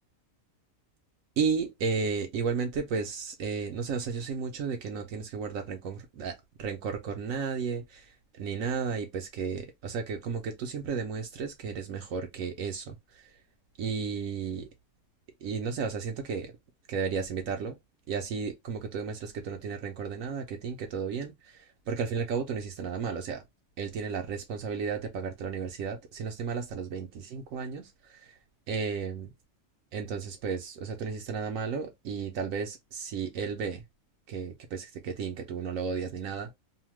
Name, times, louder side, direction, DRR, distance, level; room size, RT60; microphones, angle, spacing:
voice 1, 1.4-8.1 8.4-13.2 13.8-14.7 15.4-16.5 16.9-17.8 18.1-23.4 23.8-28.3 28.7-29.3 29.9-33.8 34.3-36.6, right 5 dB, 75° right, 1.0 m, -33 dB
2.8 x 2.1 x 3.1 m
omnidirectional pair, 1.5 m